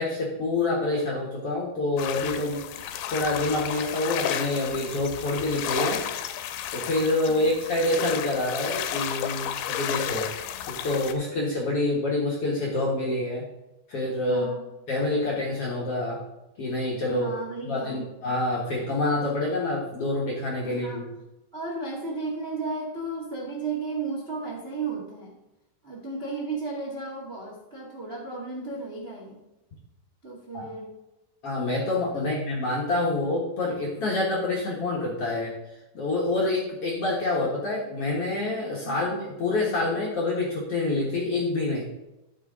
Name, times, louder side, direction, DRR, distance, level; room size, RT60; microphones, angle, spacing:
voice 1, 0.0-2.6 3.1-6.0 6.7-10.3 10.7-13.4 13.9-14.5 14.9-16.2 16.6-17.3 17.6-21.1 30.5-30.7 31.4-35.5 35.9-41.9, left 2 dB, 55° left, -4 dB, 1.8 m, -27 dB
sound 1, 2.0-11.1, left 10 dB, 85° left, 2.5 m, -32 dB
voice 2, 14.3-14.6 17.1-18.1 20.6-21.1 21.5-25.4 25.8-29.4 30.2-30.9 32.1-32.3 38.8-39.0, right 3 dB, 30° right, -4 dB, 1.0 m, -34 dB
12.5 x 5.8 x 3.7 m, 0.95 s
omnidirectional pair, 4.4 m